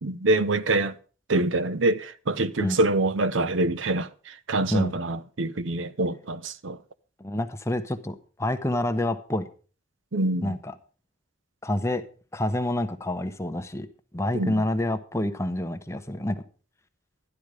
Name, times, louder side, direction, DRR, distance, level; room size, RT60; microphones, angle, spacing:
voice 1, 0.0-1.0 1.3-6.8 10.1-10.6 14.3-14.6, right 2 dB, 75° right, 0.8 m, -25 dB
voice 2, 7.2-9.5 10.4-10.7 11.6-12.0 12.3-13.9 14.1-16.4, left 1 dB, 15° left, 0.9 m, -27 dB
12.0 x 11.0 x 4.9 m
head